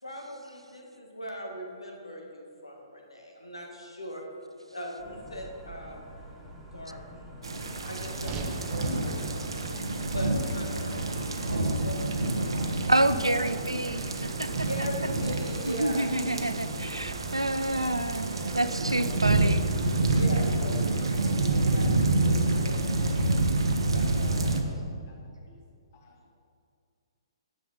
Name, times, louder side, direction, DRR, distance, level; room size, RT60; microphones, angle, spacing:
voice 1, 0.0-4.2 4.7-6.1 6.7-7.0 7.9-9.6 9.9-12.7 13.3-13.4 14.6-16.6 17.3-18.1 18.4-19.2 20.1-23.3 23.8-24.8, equal, 80° left, 1 dB, 2.0 m, -40 dB
sound 1, 5.0-21.4, equal, ahead, 2.0 m, -47 dB
sound 2, 7.4-24.6, right 2 dB, 70° right, 1.1 m, -28 dB
sound 3, 8.2-12.5, right 4 dB, 25° right, 0.8 m, -43 dB
voice 2, 12.9-14.7 15.6-19.7, right 1 dB, 90° right, 12 dB, 0.5 m, -28 dB
voice 3, 25.9-26.4, left 4 dB, 35° left, 1 dB, 1.7 m, -60 dB
10.0 x 7.5 x 5.4 m, 2.3 s
figure-of-eight pair, 125°, 3 cm